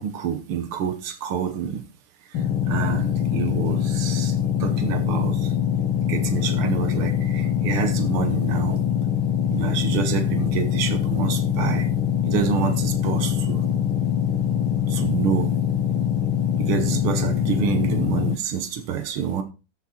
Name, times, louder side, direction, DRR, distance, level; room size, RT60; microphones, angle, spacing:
voice 1, 0.0-1.8 2.3-5.5 6.0-8.8 9.5-11.9 12.2-13.6 14.9-15.6 16.6-19.4, right 8 dB, 90° right, 2.0 m, -27 dB
sound 1, 2.3-18.4, left 9 dB, 80° left, 1.7 m, -23 dB
14.0 x 6.7 x 4.3 m
omnidirectional pair, 2.3 m